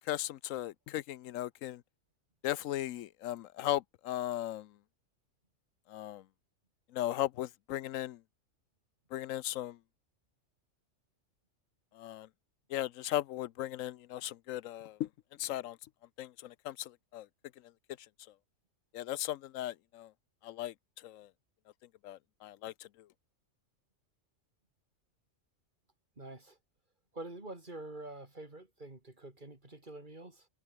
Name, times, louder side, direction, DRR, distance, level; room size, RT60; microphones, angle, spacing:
voice 1, 0.1-1.8 2.4-4.7 5.9-6.2 6.9-8.2 9.1-9.8 12.0-12.3 12.7-15.1 15.4-15.8 16.2-17.3 18.9-20.1 20.4-20.7 21.0-21.3 22.0-22.7, left 13 dB, 85° left, 1.0 m, -37 dB
voice 2, 26.2-26.6 27.1-30.5, right 2 dB, 40° right, 3.6 m, -46 dB
omnidirectional pair, 1.3 m